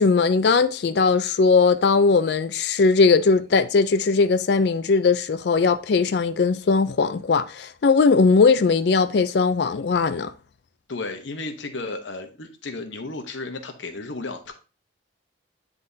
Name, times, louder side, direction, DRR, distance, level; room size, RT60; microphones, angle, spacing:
voice 1, 0.0-10.3, left 4 dB, 60° left, 0.4 m, -19 dB
voice 2, 10.9-14.5, left 3 dB, 75° left, 1.0 m, -33 dB
9.7 x 3.6 x 2.7 m
head